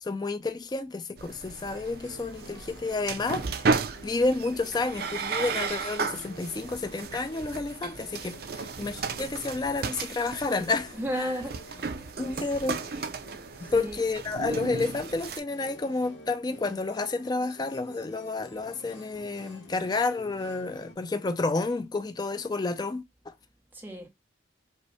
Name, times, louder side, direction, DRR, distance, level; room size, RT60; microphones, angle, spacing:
voice 1, 0.0-3.7 4.0-11.3 12.2-12.8 13.7-23.3, left 3 dB, 20° left, 0.3 m, -30 dB
sound 1, 1.2-15.4, right 4 dB, 55° right, 0.5 m, -34 dB
sound 2, 1.6-20.9, left 1 dB, 90° left, 1.9 m, -50 dB
voice 2, 11.0-12.1 13.5-14.0 23.7-24.1, equal, 10° right, 0.8 m, -35 dB
5.2 x 2.1 x 3.1 m
head